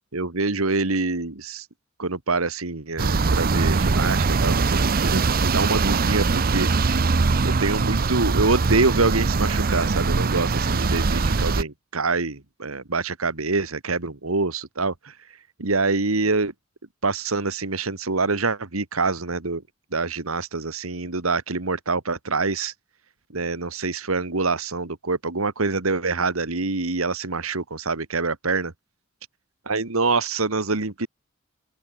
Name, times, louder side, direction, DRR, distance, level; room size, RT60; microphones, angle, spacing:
voice 1, 0.1-1.7 2.0-16.5 17.0-19.6 19.9-22.7 23.3-28.7 29.7-31.1, right 3 dB, 75° right, 1.9 m, -26 dB
sound 1, 3.0-11.6, right 4 dB, 45° right, 0.7 m, -22 dB
open air
head